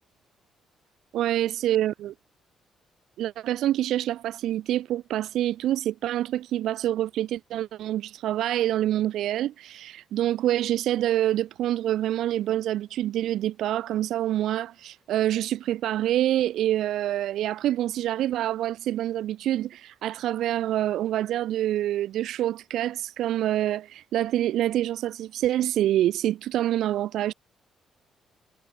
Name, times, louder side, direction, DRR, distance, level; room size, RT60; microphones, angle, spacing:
voice 1, 1.1-2.1 3.2-27.3, right 13 dB, 80° right, 0.4 m, -26 dB
cardioid pair, 90°, 0 cm